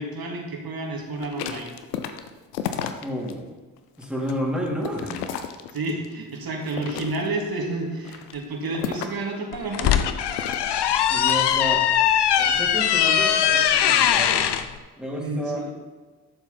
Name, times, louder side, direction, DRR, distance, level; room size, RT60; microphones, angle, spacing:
voice 1, 0.0-1.7 5.7-9.9 15.2-15.7, right 2 dB, 50° right, 1 dB, 2.6 m, -30 dB
sound 1, 1.1-3.3 3.8-6.1 6.6-7.5 8.0-9.3 10.3-13.0 13.5-13.8, left 9 dB, 90° left, 0.7 m, -35 dB
voice 2, 3.0-3.5 4.0-5.2 11.0-11.8 12.4-14.6 15.0-15.7, equal, ahead, -4 dB, 3.6 m, -31 dB
sound 2, 9.5-14.6, left 9 dB, 60° left, 0.8 m, -20 dB
12.0 x 7.1 x 4.3 m, 1.3 s
hypercardioid pair, 40°, 47 cm